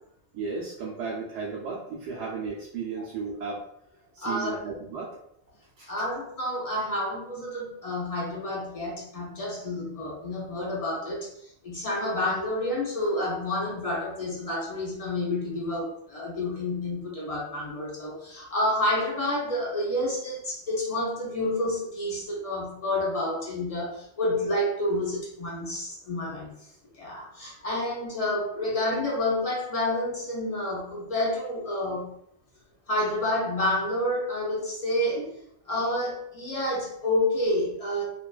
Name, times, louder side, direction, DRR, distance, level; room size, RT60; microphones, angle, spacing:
voice 1, 0.3-3.6 4.1-5.2 5.8-5.9, right 4 dB, 85° right, -4 dB, 0.9 m, -34 dB
voice 2, 4.2-4.6 5.9-26.5 26.9-32.1 32.9-35.4 35.7-38.0, left 1 dB, 50° left, -3 dB, 0.4 m, -29 dB
2.4 x 2.2 x 2.3 m, 0.73 s
omnidirectional pair, 1.2 m